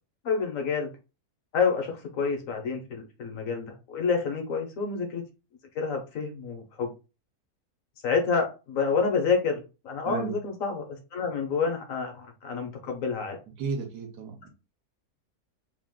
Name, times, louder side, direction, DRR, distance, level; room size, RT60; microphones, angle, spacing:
voice 1, 0.2-0.9 1.5-5.2 5.7-6.9 8.0-10.9 11.1-13.4, left 5 dB, 60° left, 1.2 m, -28 dB
voice 2, 10.1-10.4 13.6-14.5, right 5 dB, 90° right, 1.4 m, -33 dB
3.3 x 2.4 x 3.6 m
omnidirectional pair, 1.7 m